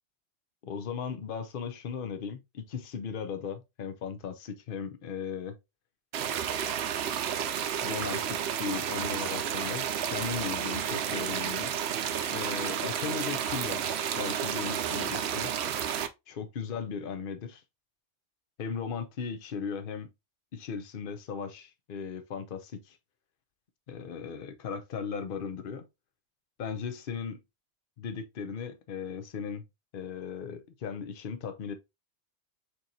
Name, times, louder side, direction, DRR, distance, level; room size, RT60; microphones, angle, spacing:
voice 1, 0.6-5.6 7.8-11.7 12.3-15.5 16.3-17.6 18.6-20.1 20.5-23.0 23.9-25.9 26.6-27.4 28.0-29.7 29.9-31.7, left 6 dB, 55° left, 0.9 m, -37 dB
sound 1, 6.1-16.1, right 8 dB, 70° right, 0.8 m, -31 dB
6.4 x 3.1 x 2.7 m
omnidirectional pair, 1.2 m